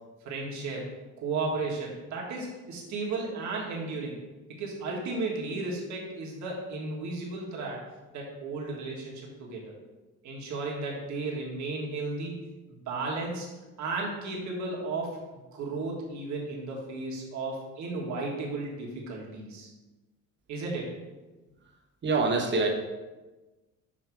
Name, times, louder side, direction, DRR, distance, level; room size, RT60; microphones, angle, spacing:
voice 1, 0.2-0.8 1.2-4.2 4.5-7.8 8.1-9.7 10.2-12.4 12.7-13.5 13.8-15.1 15.5-19.7 20.5-20.9, right 3 dB, 55° right, -2 dB, 1.7 m, -34 dB
voice 2, 22.0-22.7, right 3 dB, 35° right, 2 dB, 1.1 m, -25 dB
7.5 x 3.2 x 4.7 m, 1.2 s
cardioid pair, 125°, 34 cm